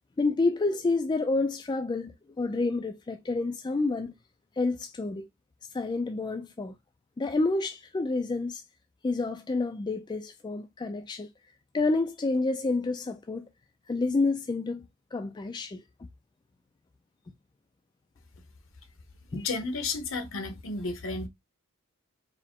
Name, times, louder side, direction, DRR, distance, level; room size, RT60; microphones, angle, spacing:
voice 1, 0.2-4.1 4.6-5.3 5.7-6.7 7.2-8.6 9.0-11.3 11.7-13.5 13.9-14.8 15.1-15.8 19.3-19.4, left 3 dB, 20° left, 0.3 m, -29 dB
voice 2, 19.3-21.3, left 3 dB, 65° left, 0.9 m, -32 dB
4.6 x 2.1 x 3.6 m
head